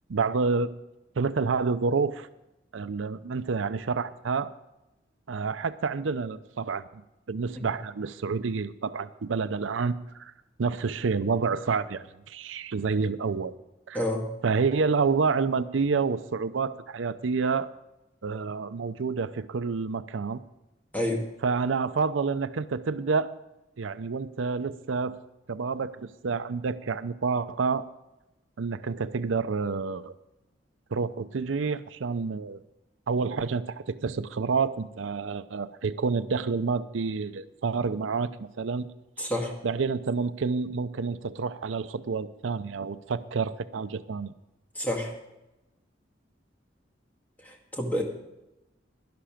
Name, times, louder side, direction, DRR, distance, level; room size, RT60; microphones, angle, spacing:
voice 1, 0.1-0.7 1.2-2.3 2.7-4.5 5.3-6.9 7.3-10.3 10.6-13.5 13.9-14.0 14.4-17.7 18.2-20.4 21.4-23.3 23.8-25.2 25.5-27.8 28.6-30.1 30.9-32.6 33.1-38.9 39.2-39.3 39.6-44.3, right 4 dB, 85° right, 13 dB, 0.5 m, -28 dB
voice 2, 39.2-39.5 44.8-45.1 47.4-48.0, left 1 dB, 10° left, 0 dB, 2.0 m, -28 dB
12.0 x 11.5 x 5.0 m, 0.96 s
head